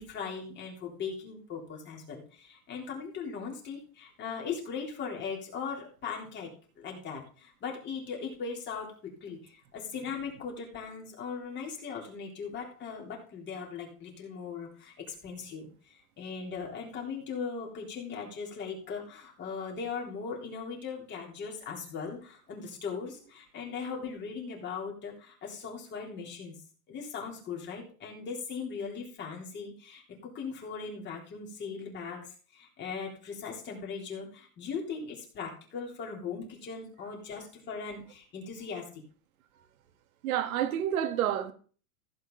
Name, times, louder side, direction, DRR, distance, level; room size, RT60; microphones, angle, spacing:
voice 1, 0.0-6.5 6.8-26.5 26.9-32.3 32.5-39.0, left 5 dB, 25° left, 3.4 m, -39 dB
voice 2, 40.2-41.5, right 10 dB, 60° right, 2.0 m, -29 dB
15.5 x 8.1 x 3.9 m
supercardioid pair, 150°, 46 cm